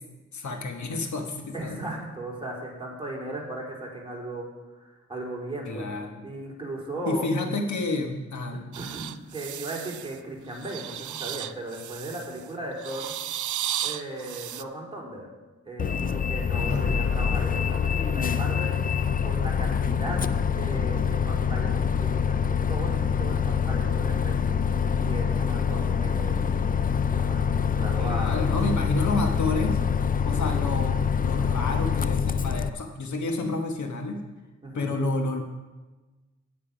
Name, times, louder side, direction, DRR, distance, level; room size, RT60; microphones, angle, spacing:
voice 1, 0.3-1.8 5.7-6.2 7.0-8.8 16.7-17.0 28.0-29.8 30.2-34.2 34.7-35.4, left 2 dB, 70° left, 4 dB, 1.4 m, -30 dB
voice 2, 1.5-4.5 4.8-5.9 6.2-7.2 8.7-13.1 13.8-15.3 15.6-18.7 19.2-24.5 25.0-26.5 27.1-28.3 30.2-30.5 34.6-35.0, right 1 dB, 15° right, -2 dB, 3.2 m, -37 dB
sound 1, 8.7-10.2 10.5-12.4 12.8-14.6, right 11 dB, 75° right, 0.5 m, -34 dB
Bus, 15.8-32.7, left 7 dB, 30° left, 0.4 m, -25 dB
10.5 x 9.7 x 5.2 m, 1.2 s
wide cardioid pair, 95°, 30 cm